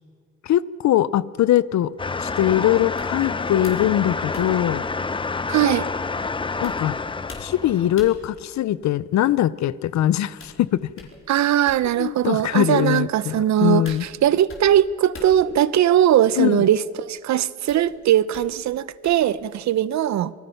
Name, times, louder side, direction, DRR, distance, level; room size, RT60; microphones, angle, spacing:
voice 1, 0.4-1.9 2.2-4.8 6.6-7.0 7.4-10.8 12.0-14.0 16.4-16.6, left 12 dB, 65° left, 0.7 m, -21 dB
sound 1, 1.3-19.8, left 3 dB, 45° left, 4.8 m, -48 dB
sound 2, 2.0-7.9, left 4 dB, 15° left, 0.7 m, -28 dB
voice 2, 5.5-5.9 11.3-20.3, right 11 dB, 65° right, 0.8 m, -20 dB
27.0 x 19.5 x 5.8 m
cardioid pair, 90°, 30 cm